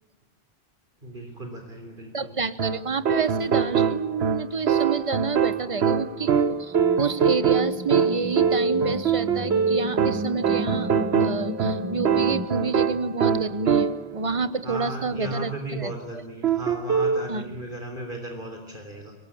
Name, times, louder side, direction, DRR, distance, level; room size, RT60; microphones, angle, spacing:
voice 1, 1.0-2.3 5.5-5.6 14.6-19.1, right 1 dB, 55° right, 3 dB, 3.7 m, -35 dB
voice 2, 2.1-10.9 11.2-15.9 17.3-17.4, right 4 dB, 35° right, 14 dB, 1.1 m, -29 dB
sound 1, 2.6-14.2 16.4-17.3, right 7 dB, 85° right, 1.3 m, -23 dB
sound 2, 6.6-12.5, equal, 15° right, 0.8 m, -34 dB
24.0 x 20.5 x 8.6 m, 1.0 s
omnidirectional pair, 1.0 m